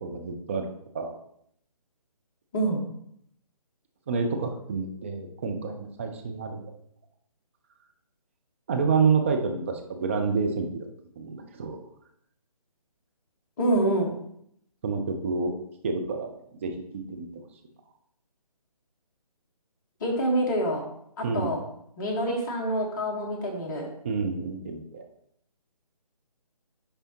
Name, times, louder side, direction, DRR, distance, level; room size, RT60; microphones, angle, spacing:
voice 1, 0.0-0.7 0.9-1.1 4.1-6.7 8.7-10.9 11.2-11.8 14.8-15.5 15.8-16.3 16.6-17.4 21.2-21.5 24.0-25.0, right 5 dB, 20° right, 3 dB, 0.4 m, -28 dB
voice 2, 13.6-14.1 20.0-20.8 21.2-21.6 22.0-23.9, right 1 dB, 30° left, -1 dB, 1.3 m, -26 dB
10.0 x 3.4 x 2.9 m, 0.70 s
figure-of-eight pair, 150°, 20 cm